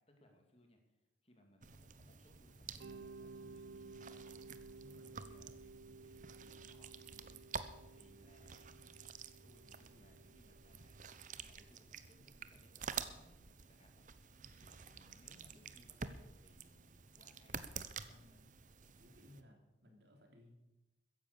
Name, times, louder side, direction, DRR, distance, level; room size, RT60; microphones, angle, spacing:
voice 1, 0.0-4.4 5.0-9.0 9.4-11.1 11.4-14.0 14.6-18.4, left 1 dB, 30° left, 3 dB, 2.4 m, -68 dB
sound 1, 1.6-19.4, right 6 dB, 45° right, 0.8 m, -50 dB
Mallet percussion, 2.8-11.6, right 4 dB, 80° right, 0.4 m, -56 dB
voice 2, 4.8-5.2 18.0-18.4 19.0-20.5, left 1 dB, 60° right, 2 dB, 3.3 m, -62 dB
14.5 x 10.5 x 6.8 m, 1.0 s
head